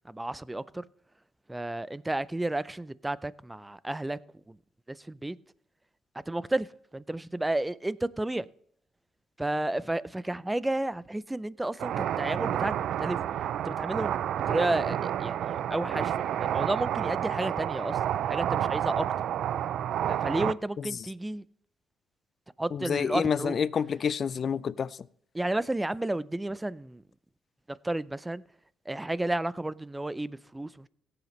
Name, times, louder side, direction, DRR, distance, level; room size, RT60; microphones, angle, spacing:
voice 1, 0.1-0.8 1.5-4.2 4.5-4.6 4.9-5.4 6.3-6.7 6.9-8.5 9.4-13.2 13.6-14.2 14.5-19.1 20.1-21.4 22.6-23.6 25.3-27.0 27.8-28.4 28.9-30.9, right 1 dB, 10° right, 0.5 m, -32 dB
sound 1, 11.8-20.5, right 10 dB, 75° right, 0.4 m, -30 dB
voice 2, 22.7-24.9, left 7 dB, 50° left, 0.5 m, -28 dB
17.5 x 7.9 x 3.2 m
cardioid pair, 90°, 0 cm